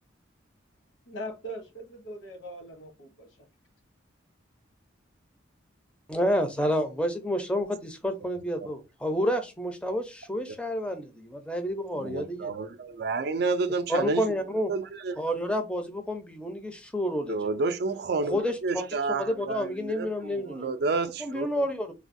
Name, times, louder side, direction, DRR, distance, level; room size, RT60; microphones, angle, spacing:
voice 1, 1.1-3.5, equal, 75° left, 0.9 m, -41 dB
voice 2, 6.1-12.5 13.9-14.7 15.2-17.4 18.2-20.7 21.2-21.9, equal, 5° left, 0.5 m, -29 dB
voice 3, 11.9-14.2 14.7-15.2 17.3-21.6, right 3 dB, 55° right, 0.3 m, -30 dB
3.3 x 2.2 x 2.5 m
head